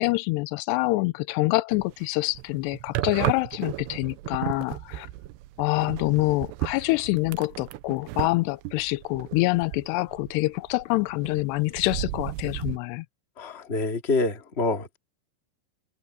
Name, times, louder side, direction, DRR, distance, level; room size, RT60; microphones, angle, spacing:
voice 1, 0.0-5.1 5.6-13.1, left 22 dB, 90° left, 2.7 m, -26 dB
sound 1, 1.7-2.1 2.4-10.8 11.1-12.8, right 16 dB, 85° right, 2.9 m, -34 dB
voice 2, 13.4-15.0, left 3 dB, 25° left, 1.6 m, -26 dB
open air
omnidirectional pair, 4.8 m